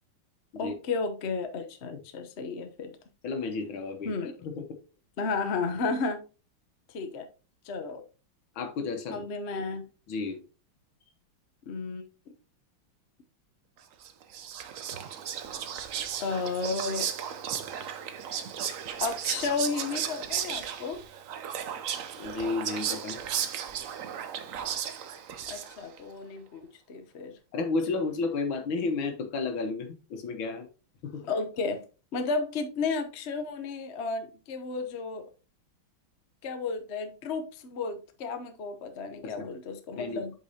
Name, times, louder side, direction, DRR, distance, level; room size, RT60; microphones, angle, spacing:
voice 1, 0.6-2.9 4.0-4.3 5.2-6.2 6.9-7.3 7.6-8.0 9.1-9.8 11.7-12.0 16.2-17.1 19.0-21.0 25.4-27.4 31.2-31.8 32.1-35.3 36.4-40.3, left 4 dB, 50° left, 0.8 m, -33 dB
voice 2, 3.2-4.1 4.4-4.6 8.6-9.2 10.1-10.4 22.1-23.2 27.5-30.7 31.0-31.2 39.2-39.5 40.0-40.2, left 3 dB, 75° left, 2.0 m, -32 dB
Whispering, 14.0-26.0, right 9 dB, 75° right, 0.7 m, -35 dB
8.2 x 5.4 x 2.8 m
omnidirectional pair, 2.3 m